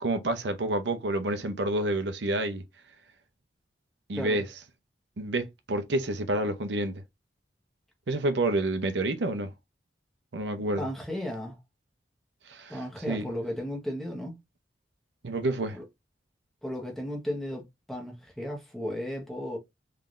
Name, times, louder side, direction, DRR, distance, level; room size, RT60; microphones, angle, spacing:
voice 1, 0.0-2.6 4.1-4.4 5.2-7.0 8.1-9.5 10.3-10.8 12.5-12.8 13.1-13.2 15.2-15.8, right 2 dB, 90° right, 0.7 m, -28 dB
voice 2, 10.8-11.6 12.7-14.4 15.7-15.8 16.6-19.6, equal, ahead, 1.0 m, -35 dB
3.8 x 3.3 x 2.5 m
head